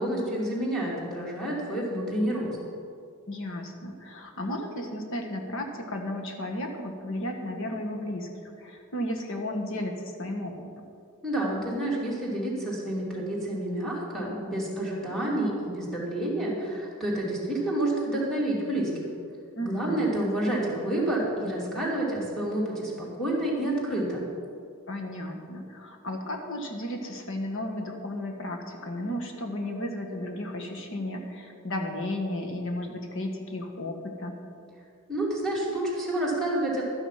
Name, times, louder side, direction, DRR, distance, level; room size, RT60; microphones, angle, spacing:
voice 1, 0.0-2.6 11.2-18.9 19.6-24.2 35.1-36.8, right 1 dB, ahead, -5 dB, 2.9 m, -29 dB
voice 2, 3.3-10.7 19.6-20.1 24.9-34.4, left 1 dB, 60° left, 3 dB, 1.5 m, -34 dB
12.5 x 9.8 x 5.8 m, 2.4 s
head